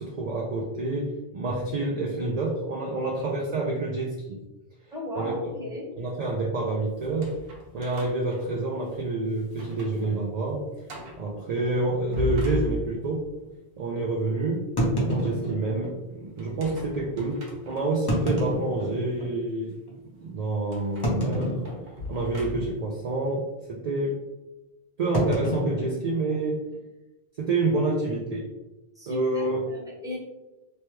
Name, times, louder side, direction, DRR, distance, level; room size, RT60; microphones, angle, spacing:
voice 1, 0.0-4.4 5.2-5.5 6.0-7.4 7.7-10.7 11.2-13.2 13.8-14.7 15.0-19.7 20.2-21.6 22.1-24.2 25.0-26.6 27.4-28.5 29.1-29.6, right 2 dB, 55° right, -2 dB, 0.4 m, -28 dB
voice 2, 4.9-5.9 28.9-30.2, left 1 dB, 5° right, -5 dB, 0.8 m, -37 dB
sound 1, 7.0-9.1 9.5-10.0 10.4-10.5 10.9-11.3 11.9-13.2 16.4-18.2 18.8-18.9 20.7-22.9, left 1 dB, 70° right, 0.9 m, -37 dB
sound 2, 10.0-10.2 11.0-11.1 11.4-11.5 12.1-12.2 14.8-16.0 16.8-16.9 17.9-19.4 19.9-20.0 21.0-22.1 22.4-22.8 23.0-23.3 25.1-26.8, equal, 30° left, 0.6 m, -29 dB
3.0 x 2.2 x 3.1 m, 1.0 s
omnidirectional pair, 1.0 m